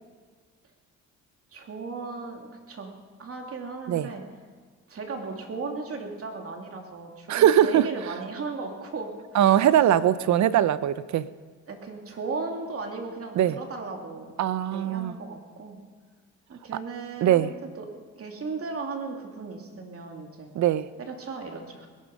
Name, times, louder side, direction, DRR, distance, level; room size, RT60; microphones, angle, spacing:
voice 1, 1.5-2.9 3.2-4.2 4.9-9.7 11.7-14.3 14.7-15.8 16.5-17.5 17.8-17.9 18.2-20.5 21.0-21.9, right 4 dB, 50° right, 2 dB, 2.8 m, -36 dB
voice 2, 7.3-7.9 9.3-11.3 13.4-13.6 14.4-15.1 17.2-17.5 20.5-20.9, right 11 dB, 65° right, 16 dB, 0.7 m, -21 dB
20.5 x 12.0 x 5.4 m, 1.5 s
cardioid pair, 90°, 30 cm